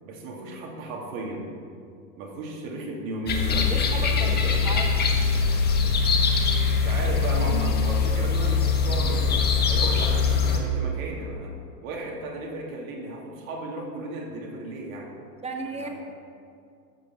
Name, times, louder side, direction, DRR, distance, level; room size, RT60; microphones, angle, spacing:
voice 1, 0.0-1.5 2.2-4.7 6.6-9.3 9.7-11.6 11.8-15.1 15.7-15.9, right 2 dB, 55° right, -1 dB, 2.8 m, -35 dB
sound 1, 3.3-10.6, left 5 dB, 20° left, 1.3 m, -22 dB
voice 2, 3.6-4.9 15.4-15.9, right 3 dB, 15° right, 3 dB, 1.3 m, -34 dB
14.0 x 5.5 x 6.0 m, 2.3 s
hypercardioid pair, 110°, 49 cm